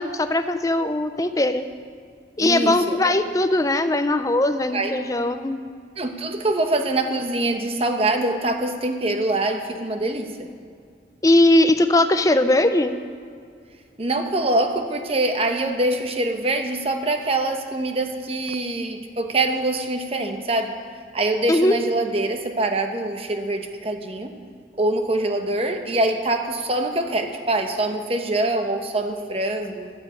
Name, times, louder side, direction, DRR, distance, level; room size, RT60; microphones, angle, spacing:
voice 1, 0.0-1.6 2.4-5.6 11.2-13.0 21.5-21.8, left 1 dB, 20° left, 9 dB, 0.5 m, -19 dB
voice 2, 2.4-3.1 4.7-5.0 6.0-10.5 14.0-20.7 21.1-24.3 24.8-29.9, right 2 dB, 35° right, 5 dB, 1.0 m, -24 dB
11.5 x 7.9 x 8.3 m, 2.2 s
head